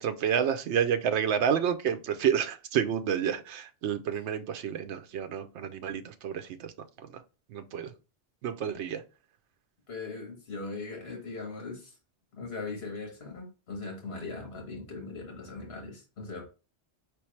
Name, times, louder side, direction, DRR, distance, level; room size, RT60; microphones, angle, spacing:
voice 1, 0.0-6.7 7.0-7.2 7.5-7.9 8.4-9.0, right 8 dB, 80° right, 0.9 m, -29 dB
voice 2, 9.9-11.9 12.3-16.5, left 3 dB, 65° left, 1.6 m, -39 dB
4.6 x 3.4 x 3.1 m
omnidirectional pair, 1.1 m